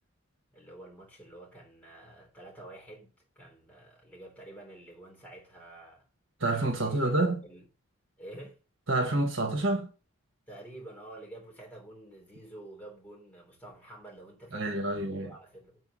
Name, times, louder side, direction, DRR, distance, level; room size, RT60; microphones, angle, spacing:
voice 1, 0.5-6.0 6.7-7.2 7.4-7.7 8.2-8.6 10.5-15.8, right 1 dB, 5° left, 3.4 m, -49 dB
voice 2, 6.4-7.4 8.9-9.9 14.5-15.3, right 2 dB, 60° right, 1.5 m, -28 dB
7.7 x 4.7 x 6.3 m
head